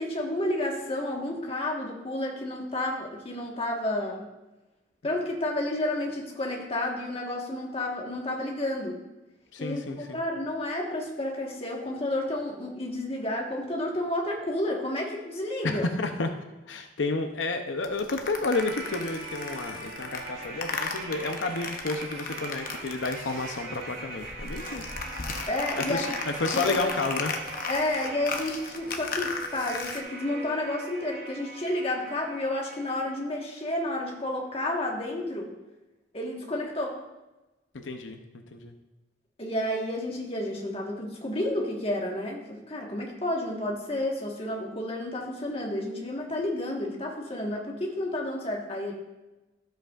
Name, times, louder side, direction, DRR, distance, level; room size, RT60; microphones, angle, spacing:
voice 1, 0.0-4.3 5.0-9.0 9.6-15.9 25.5-26.1 26.5-26.9 27.7-35.5 36.1-37.0 39.4-48.9, left 1 dB, 30° left, -1 dB, 1.4 m, -31 dB
voice 2, 9.5-10.2 15.6-16.3 16.7-24.9 25.8-27.3 37.7-38.2 38.5-38.7, left 3 dB, 90° left, 5 dB, 0.7 m, -31 dB
sound 1, 17.8-23.9 24.1-30.0, left 4 dB, 50° left, 0.8 m, -36 dB
sound 2, 18.5-33.5 33.8-33.9, right 2 dB, 55° right, 2.1 m, -41 dB
12.5 x 7.8 x 2.5 m, 1.1 s
head